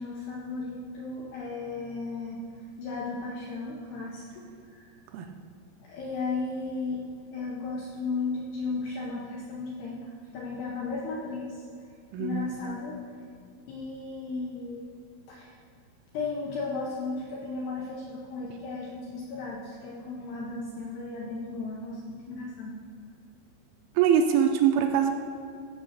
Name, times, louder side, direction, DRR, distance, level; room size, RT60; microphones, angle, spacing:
voice 1, 0.0-5.0 5.8-7.0 7.3-11.7 12.2-13.0 13.7-14.8 15.3-15.6 16.1-22.8, left 3 dB, 80° left, -2 dB, 2.4 m, -35 dB
voice 2, 24.0-25.1, right 8 dB, 80° right, 5 dB, 3.0 m, -22 dB
15.5 x 5.4 x 6.6 m, 2.3 s
omnidirectional pair, 5.9 m